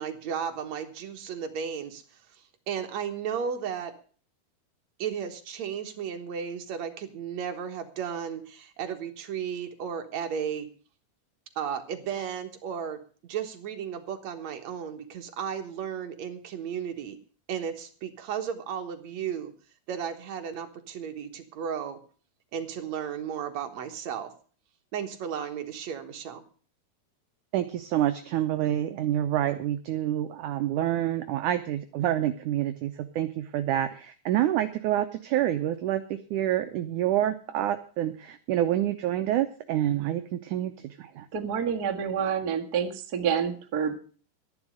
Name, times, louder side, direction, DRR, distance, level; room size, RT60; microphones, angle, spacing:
voice 1, 0.0-3.9 5.0-10.7 11.6-17.2 17.5-19.5 19.9-22.0 22.5-24.3 24.9-26.4, right 8 dB, 60° right, 6 dB, 2.1 m, -34 dB
voice 2, 27.5-41.3, right 12 dB, 75° right, 8 dB, 1.9 m, -27 dB
voice 3, 41.3-44.0, right 7 dB, 45° right, 1 dB, 1.3 m, -28 dB
12.5 x 11.0 x 6.4 m, 0.40 s
omnidirectional pair, 4.4 m